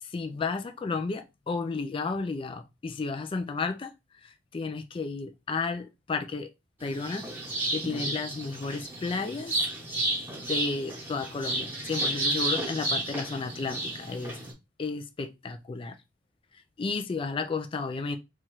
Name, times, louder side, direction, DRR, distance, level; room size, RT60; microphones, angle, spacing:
voice 1, 0.0-3.9 4.2-6.5 6.8-7.3 7.7-9.6 10.4-14.4 14.8-16.0 16.8-18.2, left 4 dB, 30° left, 0.3 m, -32 dB
sound 1, 6.8-14.5, right 2 dB, 10° right, 1.0 m, -32 dB
4.2 x 2.4 x 3.0 m
head